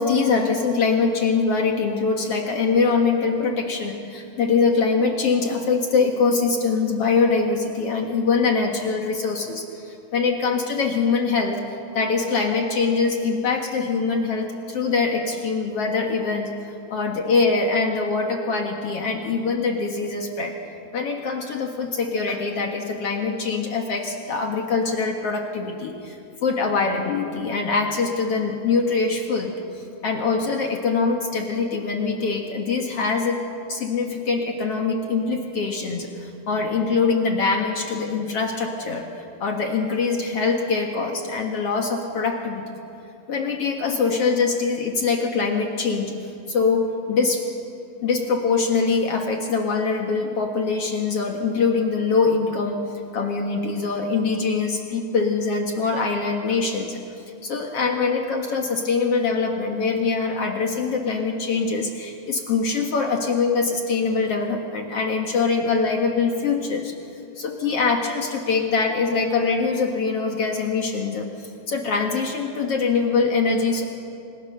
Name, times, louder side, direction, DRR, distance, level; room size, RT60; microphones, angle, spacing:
voice 1, 0.0-11.6 11.9-16.5 16.9-20.5 20.9-33.4 33.7-42.6 43.3-46.1 46.5-47.4 48.0-52.8 53.1-57.0 57.4-66.9 67.3-71.3 71.7-73.8, left 4 dB, 80° left, 2 dB, 1.3 m, -23 dB
30.0 x 26.5 x 6.8 m, 2.7 s
omnidirectional pair, 5.4 m